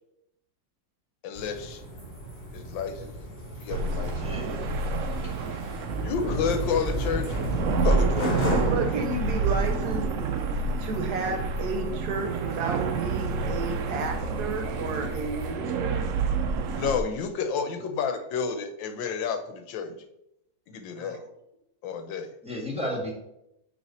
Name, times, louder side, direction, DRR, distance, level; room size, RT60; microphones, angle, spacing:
voice 1, 1.2-1.8 2.5-3.1 3.6-4.2 6.0-7.4 7.7-8.7 16.7-19.9 20.7-21.2 21.8-22.3, left 6 dB, 80° left, 8 dB, 1.5 m, -30 dB
sound 1, 1.4-15.5, equal, 30° left, 2.3 m, -35 dB
sound 2, 3.7-17.0, right 4 dB, 85° right, 0.7 m, -29 dB
voice 2, 4.2-4.6 5.3-5.5 22.4-23.1, equal, 5° right, -3 dB, 1.4 m, -33 dB
voice 3, 8.6-10.0 10.6-16.0 21.0-21.2, right 3 dB, 65° right, 6 dB, 1.2 m, -32 dB
8.6 x 3.2 x 4.1 m, 0.82 s
omnidirectional pair, 2.0 m